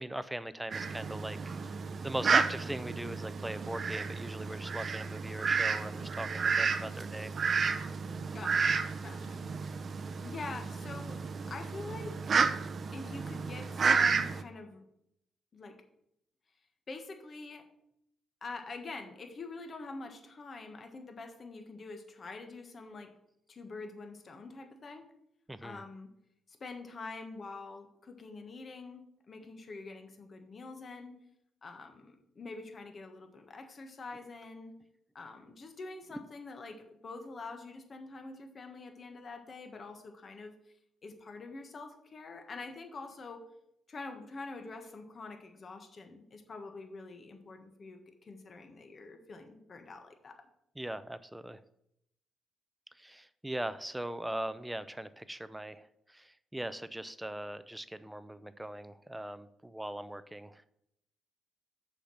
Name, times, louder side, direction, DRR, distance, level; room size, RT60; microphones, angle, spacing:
voice 1, 0.0-1.6 2.0-7.3 25.5-25.8 50.8-51.6 53.0-60.6, right 1 dB, 10° right, 14 dB, 0.6 m, -40 dB
Fowl, 0.7-14.4, right 5 dB, 45° right, 0.7 m, -32 dB
voice 2, 8.3-9.4 9.7-9.8 10.2-11.2 11.5-12.3 12.9-14.8 15.5-15.8 16.9-17.6 18.4-23.1 23.5-25.0 25.6-26.1 26.5-31.2 31.6-34.7 35.1-40.5 41.0-43.4 43.9-50.5, left 3 dB, 40° left, 5 dB, 1.5 m, -45 dB
6.8 x 5.7 x 6.4 m, 0.77 s
cardioid pair, 90°, 0 cm